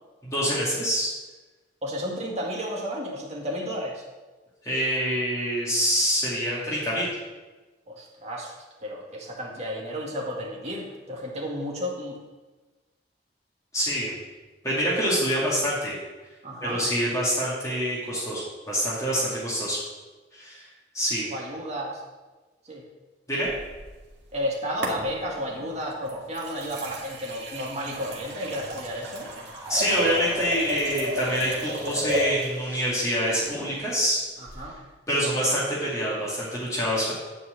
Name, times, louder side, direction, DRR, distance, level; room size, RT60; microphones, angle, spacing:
voice 1, 0.2-1.1 4.6-7.1 13.7-14.1 14.6-16.0 16.6-19.8 20.3-20.7 20.9-21.3 23.3-23.5 29.7-34.2 35.1-37.1, equal, 20° left, -8 dB, 2.4 m, -26 dB
voice 2, 1.8-4.0 7.9-8.5 8.8-12.2 16.4-16.9 21.3-22.0 22.6-22.8 24.3-29.3 34.4-34.8, equal, 40° right, -2 dB, 2.1 m, -32 dB
sound 1, 23.5-24.4 24.8-25.5 26.1-32.6 34.5-34.6, equal, 70° right, 1.9 m, -33 dB
sound 2, 25.3-26.1 27.7-33.7, right 1 dB, 10° right, 2.5 m, -43 dB
10.5 x 4.7 x 7.9 m, 1.2 s
head